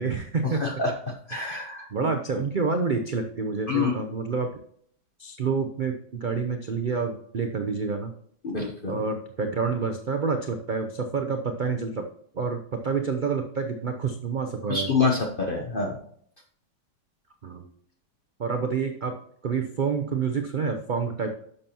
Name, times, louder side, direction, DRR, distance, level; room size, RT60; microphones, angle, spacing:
voice 1, 0.0-0.6 1.9-4.5 5.2-8.1 8.9-12.0 12.3-14.9 17.4-17.7 18.4-19.2 19.4-21.4, right 5 dB, 80° right, 5 dB, 0.4 m, -28 dB
voice 2, 0.6-2.1 3.7-3.9 8.4-9.0 14.7-16.0, left 4 dB, 40° left, 1 dB, 0.9 m, -27 dB
10.5 x 6.8 x 2.9 m, 0.65 s
omnidirectional pair, 1.8 m